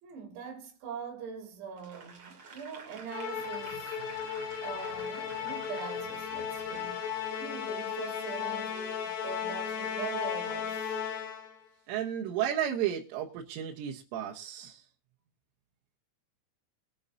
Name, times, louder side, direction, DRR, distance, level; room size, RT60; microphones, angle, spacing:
voice 1, 0.0-4.1 4.3-7.0 7.4-10.9, right 6 dB, 60° right, 4.8 m, -42 dB
Applause / Crowd, 1.8-7.5 8.0-8.2, right 5 dB, 35° right, 2.4 m, -51 dB
Musical instrument, 3.1-11.6, left 8 dB, 85° left, 4.7 m, -35 dB
voice 2, 11.9-14.9, right 10 dB, 80° right, 3.6 m, -33 dB
22.5 x 9.4 x 2.7 m
omnidirectional pair, 5.8 m